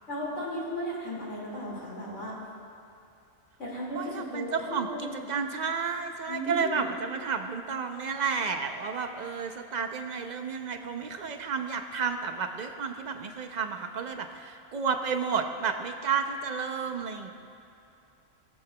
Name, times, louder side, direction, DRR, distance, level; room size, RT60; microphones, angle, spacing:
voice 1, 0.1-2.4 3.6-5.3 6.3-6.8, equal, 85° left, -6 dB, 2.4 m, -35 dB
voice 2, 4.0-17.3, right 5 dB, 50° right, 6 dB, 0.5 m, -31 dB
20.5 x 7.5 x 2.2 m, 2.7 s
omnidirectional pair, 1.2 m